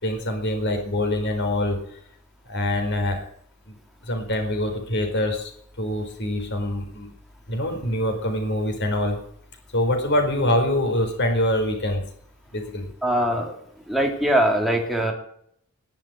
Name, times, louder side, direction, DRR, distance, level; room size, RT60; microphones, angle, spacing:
voice 1, 0.0-1.8 2.5-3.2 4.1-5.5 5.8-7.1 7.5-9.2 9.7-12.0 12.5-12.9, left 1 dB, 55° left, 4 dB, 4.6 m, -24 dB
voice 2, 13.0-13.6 13.9-15.1, right 1 dB, ahead, 0 dB, 2.7 m, -22 dB
20.5 x 7.5 x 9.0 m, 0.67 s
head